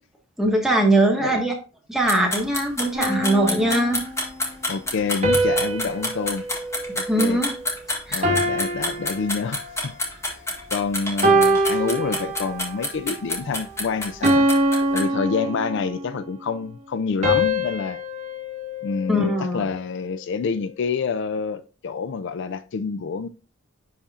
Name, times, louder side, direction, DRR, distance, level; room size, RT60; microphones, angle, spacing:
voice 1, 0.4-1.5 1.9-4.0 7.1-7.5 8.1-8.3 19.1-19.6, right 1 dB, ahead, 1.5 m, -21 dB
sound 1, 2.1-15.0, left 1 dB, 15° left, 1.7 m, -28 dB
sound 2, 2.9-4.2 5.2-7.7 8.2-9.9 10.5-10.8 11.2-12.8 13.2-13.5 14.2-16.1 17.2-19.6, right 1 dB, 35° right, 1.8 m, -24 dB
voice 2, 4.7-6.5 6.9-7.4 8.1-10.0 10.2-10.4 10.7-14.5 14.9-18.0 18.8-23.3, left 5 dB, 60° left, 0.4 m, -27 dB
10.5 x 4.2 x 2.4 m
head